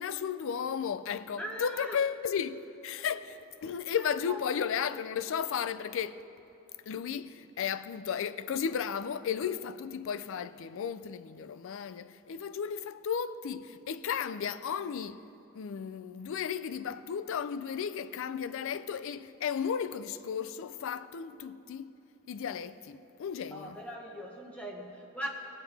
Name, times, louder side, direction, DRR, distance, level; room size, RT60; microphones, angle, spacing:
voice 1, 0.0-6.2 6.9-15.2 15.5-22.0 22.3-23.8, left 7 dB, 65° left, 0.4 m, -34 dB
voice 2, 1.4-2.0 4.3-4.4 23.5-25.3, right 1 dB, 5° left, 0.8 m, -40 dB
19.0 x 7.4 x 3.4 m
head